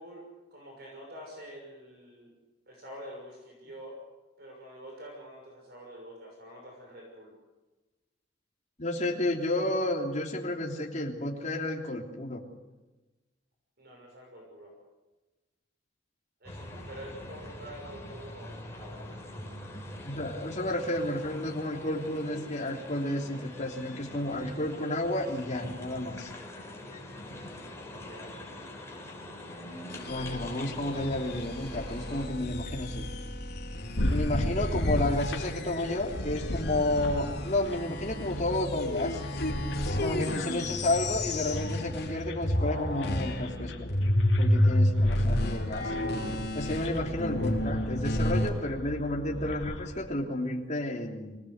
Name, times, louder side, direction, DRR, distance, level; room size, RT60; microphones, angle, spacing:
voice 1, 0.0-2.3 2.7-4.0 4.4-7.3 13.8-14.7 16.4-19.8 27.9-28.3, equal, 60° right, 0 dB, 6.2 m, -47 dB
voice 2, 8.8-12.4 20.0-26.3 30.1-33.1 34.1-39.2 39.8-43.7 44.4-45.9 46.5-51.4, left 1 dB, 40° left, 1 dB, 3.3 m, -31 dB
sound 1, 16.4-32.3, left 1 dB, 15° left, 4.4 m, -44 dB
sound 2, 29.9-42.2 42.4-48.5, left 1 dB, 60° left, 3.7 m, -31 dB
sound 3, 34.0-49.9, left 1 dB, 75° left, 2.8 m, -37 dB
25.0 x 18.5 x 8.2 m, 1.1 s
head